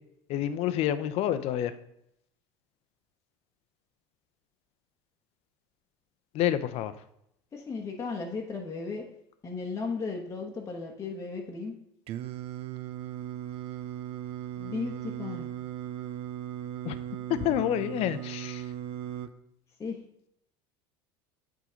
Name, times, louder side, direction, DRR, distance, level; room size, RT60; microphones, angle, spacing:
voice 1, 0.3-1.7 6.3-6.9 16.8-16.9 17.3-18.7, left 11 dB, 55° left, 12 dB, 0.7 m, -28 dB
voice 2, 7.5-9.0 9.4-11.7 14.6-15.5 19.8-20.0, left 4 dB, 25° left, -1 dB, 1.1 m, -35 dB
Singing, 12.1-19.3, right 11 dB, 50° right, 0.6 m, -37 dB
8.3 x 3.8 x 5.1 m, 0.77 s
supercardioid pair, 110°, 12 cm